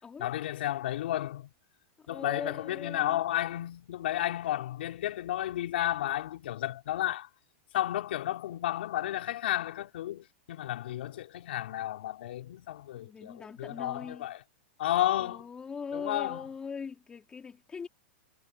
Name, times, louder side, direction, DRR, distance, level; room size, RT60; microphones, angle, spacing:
voice 1, 0.2-1.5 2.1-7.3 7.7-14.4 14.8-15.4 15.9-16.4, left 13 dB, 70° left, 5.6 m, -32 dB
voice 2, 2.0-3.2 12.9-14.3 15.2-17.9, left 5 dB, 15° left, 4.1 m, -41 dB
supercardioid pair, 150°, 6 cm